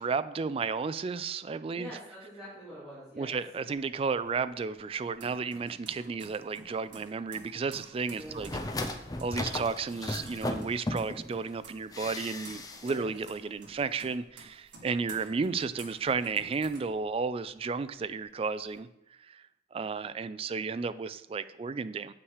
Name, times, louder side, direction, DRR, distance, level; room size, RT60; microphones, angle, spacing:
voice 1, 0.0-1.9 3.2-8.5 9.2-18.9 19.3-19.4 19.7-22.1, right 5 dB, 30° right, 14 dB, 0.3 m, -33 dB
voice 2, 1.7-3.4 8.1-8.5 12.8-13.1, equal, 5° right, -12 dB, 3.0 m, -45 dB
sound 1, 3.7-17.6 17.9-18.8, right 3 dB, 80° right, 1.8 m, -52 dB
sound 2, 8.3-11.3 11.9-13.0 13.2-13.3, left 2 dB, 20° left, 0.6 m, -36 dB
8.0 x 6.0 x 4.8 m, 0.86 s
head